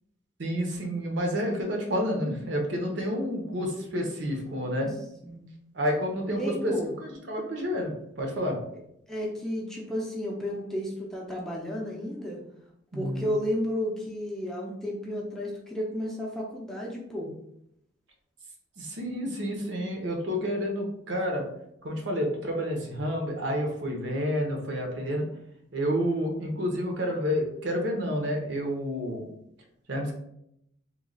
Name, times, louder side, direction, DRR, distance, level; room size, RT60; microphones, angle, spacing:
voice 1, 0.4-4.9 5.7-6.7 7.3-7.9 8.2-8.6 12.9-13.3 18.8-21.5 21.8-25.2 25.7-29.3 29.9-30.1, equal, 65° right, 1 dB, 0.8 m, -29 dB
voice 2, 5.2-5.5 6.4-6.9 9.1-12.4 12.9-17.3, equal, ahead, -3 dB, 0.5 m, -32 dB
3.1 x 2.3 x 3.7 m, 0.76 s
head